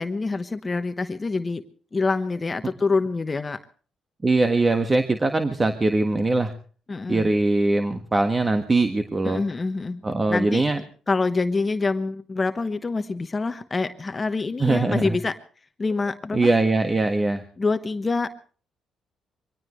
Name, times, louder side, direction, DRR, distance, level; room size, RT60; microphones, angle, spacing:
voice 1, 0.0-1.6 1.9-3.6 6.9-7.3 9.2-10.0 10.3-10.6 11.1-15.3 15.8-16.5 17.6-18.3, left 3 dB, 30° left, 9 dB, 1.1 m, -26 dB
voice 2, 4.2-6.5 7.1-9.4 10.0-10.8 14.6-15.2 16.3-17.4, right 2 dB, 25° right, 7 dB, 1.6 m, -21 dB
24.0 x 18.5 x 3.2 m, 0.41 s
cardioid pair, 90°, 0 cm